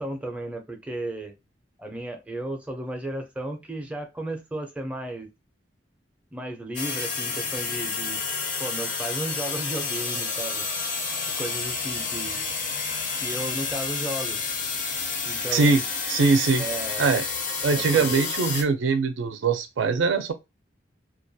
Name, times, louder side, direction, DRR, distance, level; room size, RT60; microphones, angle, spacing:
voice 1, 0.0-1.3 1.8-5.3 6.3-8.2 8.6-10.7 11.4-12.5 13.2-14.4 15.2-15.8 16.6-17.2 17.7-18.2, right 1 dB, 5° right, 0.4 m, -34 dB
sound 1, 6.8-18.6, left 4 dB, 45° left, 0.5 m, -30 dB
voice 2, 15.5-15.8 16.1-16.6 17.0-17.3 17.6-20.3, right 4 dB, 75° right, 0.4 m, -22 dB
2.3 x 2.2 x 2.6 m
head